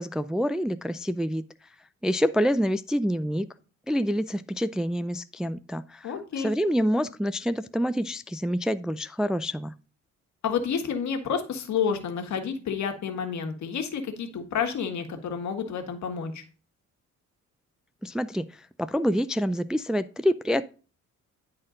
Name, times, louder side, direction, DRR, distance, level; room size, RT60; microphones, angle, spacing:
voice 1, 0.0-1.4 2.0-3.5 3.9-9.7 18.0-20.6, equal, ahead, 12 dB, 0.3 m, -27 dB
voice 2, 6.0-6.5 10.4-16.4, left 6 dB, 70° left, 5 dB, 1.6 m, -30 dB
10.0 x 4.3 x 3.8 m, 0.36 s
cardioid pair, 90°, 30 cm